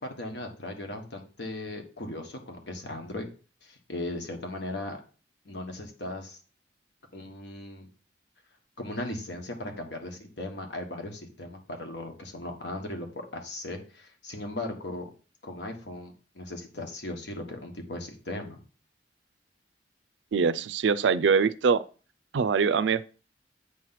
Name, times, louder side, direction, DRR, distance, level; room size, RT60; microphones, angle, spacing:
voice 1, 0.0-3.3 3.6-5.0 5.4-6.4 7.1-7.9 8.8-15.1 15.4-18.6, left 1 dB, 70° left, 1.4 m, -37 dB
voice 2, 20.3-21.8 22.3-23.1, right 5 dB, 85° right, 0.4 m, -23 dB
8.3 x 3.1 x 5.8 m
head